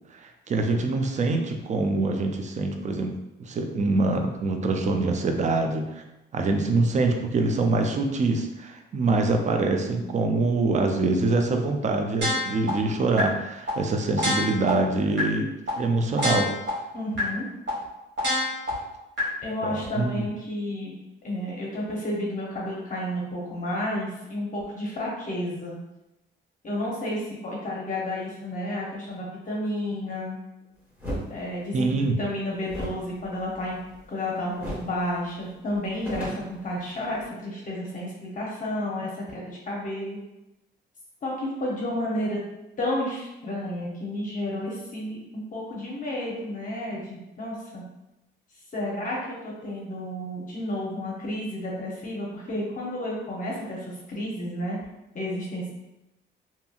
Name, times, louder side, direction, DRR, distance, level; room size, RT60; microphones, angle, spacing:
voice 1, 0.1-3.1 3.4-6.0 6.3-16.5 19.6-20.3 31.7-32.2, right 3 dB, 35° right, 5 dB, 0.4 m, -25 dB
sound 1, 12.2-12.7 13.2-13.3 13.7-13.8 14.2-14.7 15.2-15.3 15.7-15.8 16.2-16.7 17.2-17.3 17.7-17.8 18.2-18.7 19.2-19.3, left 1 dB, 65° right, 1.4 m, -26 dB
voice 2, 16.9-17.5 19.4-21.0 21.2-25.8 26.6-30.4 31.3-33.8 34.1-40.2 41.2-42.4 42.8-47.8 48.7-54.8 55.1-55.7, left 1 dB, 40° left, -4 dB, 0.7 m, -31 dB
sound 2, 31.0-31.3 32.7-34.2 34.6-35.0 35.3-35.4 35.7-37.2, equal, 10° right, 1.4 m, -35 dB
2.7 x 2.7 x 2.3 m, 0.95 s
cardioid pair, 90°, 20 cm